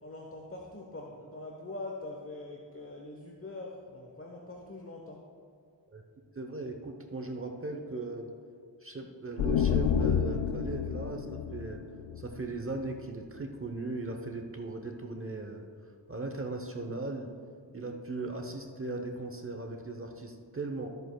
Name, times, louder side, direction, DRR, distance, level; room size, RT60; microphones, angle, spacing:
voice 1, 0.0-5.2, left 2 dB, 30° left, -1 dB, 1.1 m, -43 dB
voice 2, 6.3-8.3 8.8-11.8 12.2-15.6 16.1-17.3 17.7-20.9, right 2 dB, 30° right, 4 dB, 0.9 m, -38 dB
sound 1, 9.4-13.0, left 7 dB, 85° left, 0.6 m, -30 dB
13.5 x 7.9 x 2.3 m, 2.3 s
cardioid pair, 50°, 43 cm